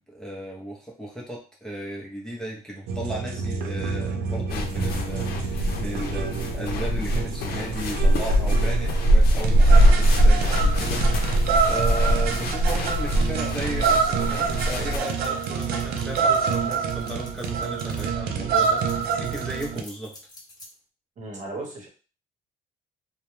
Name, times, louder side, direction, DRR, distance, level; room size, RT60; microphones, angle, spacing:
voice 1, 0.0-20.1, right 1 dB, 5° left, -4 dB, 0.6 m, -35 dB
sound 1, 2.9-19.8, right 6 dB, 65° right, 0.5 m, -27 dB
sound 2, 4.5-15.0, equal, 65° left, 0.6 m, -21 dB
sound 3, 14.9-18.0 18.5-20.7, left 2 dB, 25° left, 1.0 m, -47 dB
voice 2, 21.2-21.9, right 2 dB, 45° right, 0 dB, 1.0 m, -35 dB
2.2 x 2.1 x 3.0 m, 0.35 s
cardioid pair, 110°, 17 cm